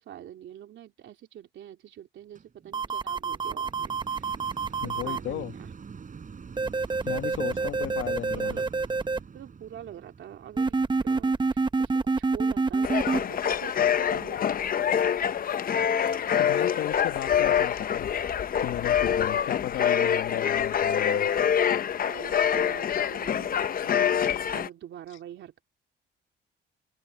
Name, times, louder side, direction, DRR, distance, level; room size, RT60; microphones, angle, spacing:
voice 1, 0.0-4.3 4.8-5.7 7.0-7.1 7.4-8.7 9.3-10.8 11.0-14.5 22.0-23.9 24.5-25.6, right 11 dB, 75° right, 3.0 m, -45 dB
sound 1, 2.3-13.6 14.2-14.3, right 6 dB, 40° right, 6.0 m, -46 dB
sound 2, 2.7-5.2 6.6-9.2 10.6-13.2, right 4 dB, 25° right, 0.9 m, -27 dB
voice 2, 4.8-5.5 7.0-8.6 16.4-18.1 18.6-21.3, left 13 dB, 80° left, 1.5 m, -34 dB
sound 3, 12.8-24.7, left 8 dB, 45° left, 0.7 m, -25 dB
open air
cardioid pair, 90°, 20 cm